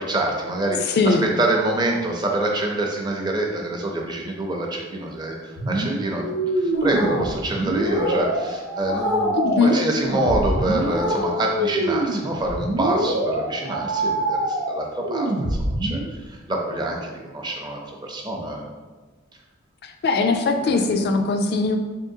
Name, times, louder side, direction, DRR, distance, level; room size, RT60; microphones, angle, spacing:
voice 1, 0.0-6.2 6.5-15.3 15.8-18.6, right 2 dB, 20° right, 0 dB, 0.5 m, -26 dB
voice 2, 0.9-1.3 9.3-9.9 19.8-21.8, left 3 dB, 50° left, 5 dB, 0.3 m, -20 dB
sound 1, 5.6-16.1, right 1 dB, 65° right, 0.6 m, -25 dB
sound 2, 6.7-7.3 7.8-8.2 8.8-9.4 9.9-10.3 10.8-11.3, left 2 dB, 85° left, 0.8 m, -28 dB
3.6 x 3.6 x 2.7 m, 1.3 s
head